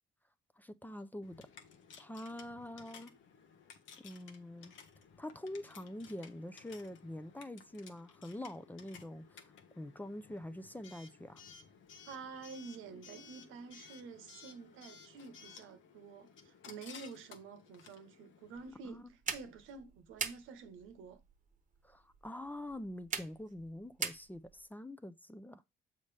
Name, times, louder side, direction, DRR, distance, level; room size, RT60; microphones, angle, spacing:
voice 1, 0.6-1.5 2.0-3.1 4.0-4.7 5.2-9.5 9.8-11.4 18.8-19.1 21.8-25.6, left 1 dB, 10° left, 0.5 m, -45 dB
Coin (dropping) / Alarm, 1.2-18.7, left 6 dB, 80° left, 1.1 m, -57 dB
voice 2, 12.1-21.2, right 5 dB, 90° right, 1.0 m, -49 dB
sound 1, 18.5-24.7, right 5 dB, 40° right, 1.0 m, -44 dB
7.0 x 5.3 x 3.3 m
cardioid pair, 90°, 20 cm